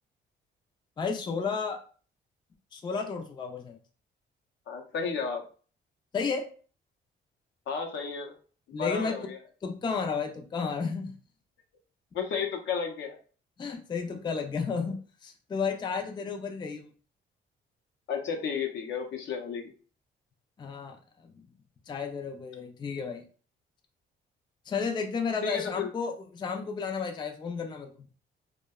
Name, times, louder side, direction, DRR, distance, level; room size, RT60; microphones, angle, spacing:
voice 1, 1.0-1.8 2.7-3.8 6.1-6.4 8.7-9.3 9.6-11.1 13.6-16.9 20.6-21.0 21.9-23.2 24.7-27.9, left 5 dB, 25° left, 4 dB, 0.4 m, -32 dB
voice 2, 4.7-5.4 7.7-8.3 8.7-9.4 12.1-13.2 18.1-19.7 25.4-25.9, left 6 dB, 70° left, 4 dB, 0.6 m, -33 dB
2.6 x 2.1 x 2.2 m, 0.40 s
cardioid pair, 90°, 20 cm